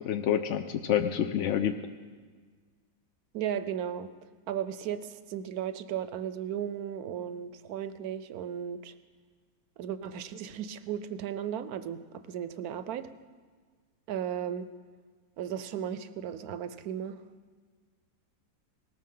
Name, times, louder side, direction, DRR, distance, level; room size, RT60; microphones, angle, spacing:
voice 1, 0.0-1.8, left 9 dB, 70° left, 8 dB, 0.7 m, -28 dB
voice 2, 3.3-4.1 4.5-8.9 9.8-13.1 14.1-14.7 15.4-17.2, right 9 dB, 70° right, 12 dB, 1.1 m, -35 dB
18.5 x 14.0 x 3.8 m, 1.5 s
omnidirectional pair, 1.8 m